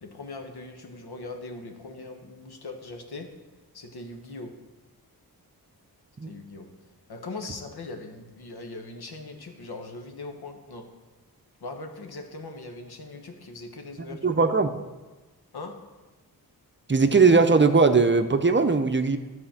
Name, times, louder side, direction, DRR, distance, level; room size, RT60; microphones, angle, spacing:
voice 1, 0.0-3.3 3.7-4.5 6.3-6.7 7.1-10.9 11.6-14.3 15.5-15.8, left 3 dB, 80° left, 4 dB, 1.3 m, -40 dB
voice 2, 14.2-14.7 16.9-19.2, right 4 dB, 30° right, 8 dB, 0.6 m, -19 dB
11.5 x 4.3 x 7.3 m, 1.2 s
wide cardioid pair, 75°, 38 cm